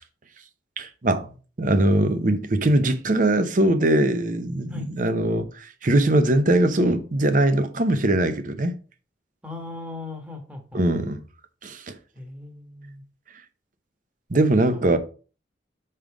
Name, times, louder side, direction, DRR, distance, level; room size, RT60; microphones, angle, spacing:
voice 1, 0.8-8.7 10.7-11.2 11.6-12.0 14.3-15.0, right 1 dB, 45° right, 0.7 m, -21 dB
voice 2, 9.4-10.8 12.1-13.0 14.7-15.0, left 3 dB, 5° right, 1.3 m, -38 dB
5.5 x 5.2 x 4.8 m
head